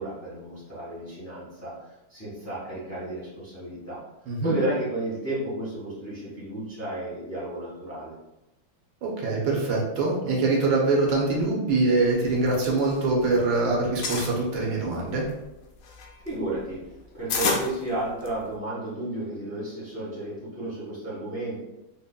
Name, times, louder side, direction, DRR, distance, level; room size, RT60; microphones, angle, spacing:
voice 1, 0.0-1.7 2.1-4.0 4.4-8.1 16.2-16.8 17.1-21.6, right 1 dB, 10° left, -8 dB, 1.1 m, -32 dB
voice 2, 9.0-15.3, right 3 dB, 80° right, -2 dB, 1.6 m, -24 dB
sound 1, 12.3-13.5 13.7-14.4 15.0-18.6, left 4 dB, 80° left, 1.4 m, -30 dB
4.2 x 3.0 x 2.2 m, 0.94 s
omnidirectional pair, 2.1 m